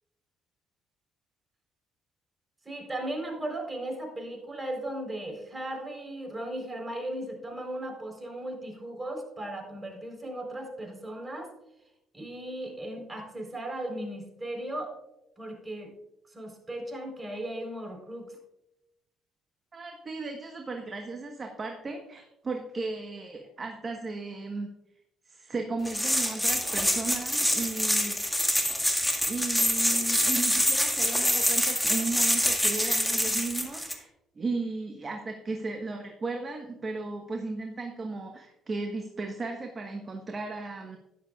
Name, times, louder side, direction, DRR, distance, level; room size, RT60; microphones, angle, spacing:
voice 1, 2.6-11.5 12.1-14.9 15.4-15.9 16.3-18.4, right 1 dB, 20° right, 1 dB, 4.0 m, -36 dB
voice 2, 19.7-24.7 25.3-28.3 29.3-34.1 34.4-41.0, right 3 dB, 35° right, 3 dB, 1.2 m, -35 dB
sound 1, 25.9-33.9, equal, 5° left, 1.9 m, -26 dB
12.5 x 11.0 x 2.4 m, 0.88 s
supercardioid pair, 60°, 0 cm